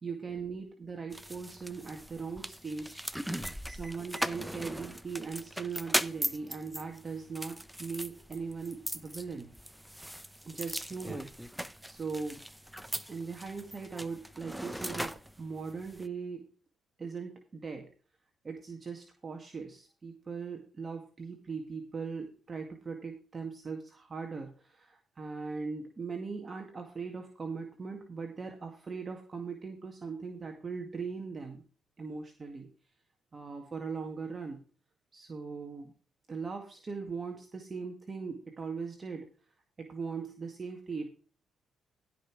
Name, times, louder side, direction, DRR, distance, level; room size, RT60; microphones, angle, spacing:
voice 1, 0.0-3.0 3.7-9.5 10.5-11.3 11.8-12.4 13.1-16.5 17.0-17.9 18.4-31.6 32.0-32.7 33.3-34.6 35.1-35.9 36.3-39.3 39.8-41.1, right 5 dB, 40° right, 3 dB, 2.0 m, -40 dB
sound 1, 1.1-16.1, equal, 5° right, 0.9 m, -39 dB
15.5 x 5.7 x 4.7 m, 0.38 s
supercardioid pair, 55°, 0 cm